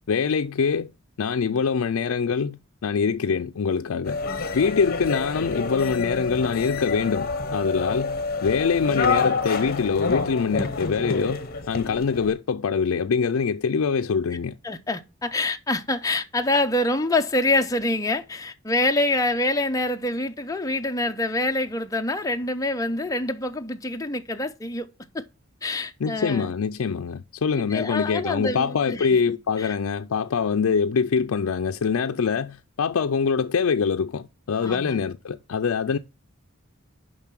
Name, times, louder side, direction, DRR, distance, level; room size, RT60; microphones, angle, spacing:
voice 1, 0.1-0.9 1.2-4.2 4.5-14.6 26.0-36.0, left 5 dB, 75° left, 0.4 m, -24 dB
sound 1, 4.0-12.3, left 4 dB, 45° left, 1.0 m, -28 dB
voice 2, 14.6-24.9 25.1-25.2 25.6-26.5 27.6-29.7 34.6-35.0, left 2 dB, 15° left, 0.6 m, -26 dB
7.2 x 5.4 x 5.8 m
head